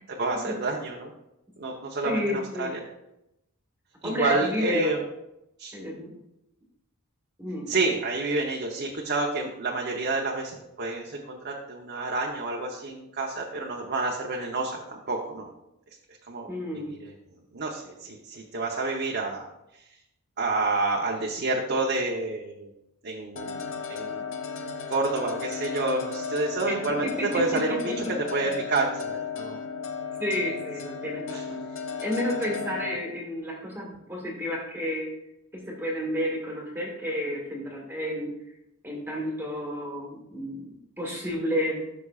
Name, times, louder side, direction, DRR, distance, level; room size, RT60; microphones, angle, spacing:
voice 1, 0.2-1.1 1.6-2.7 4.0-5.0 5.6-5.7 7.7-15.5 16.3-16.5 17.5-19.4 20.4-22.7 23.0-23.6 23.9-24.2 24.9-27.1 27.3-27.8 28.3-29.6 31.3-31.4, right 3 dB, 50° right, -1 dB, 0.9 m, -28 dB
voice 2, 2.0-2.7 4.0-5.0 5.7-6.1 7.4-7.7 16.5-16.9 26.7-26.8 27.0-28.1 28.4-28.5 30.2-31.6 32.0-35.1 35.5-38.3 38.8-41.9, equal, 10° right, -3 dB, 1.6 m, -31 dB
sound 1, 23.4-33.0, left 5 dB, 60° left, 0.8 m, -35 dB
13.0 x 6.1 x 2.4 m, 0.88 s
head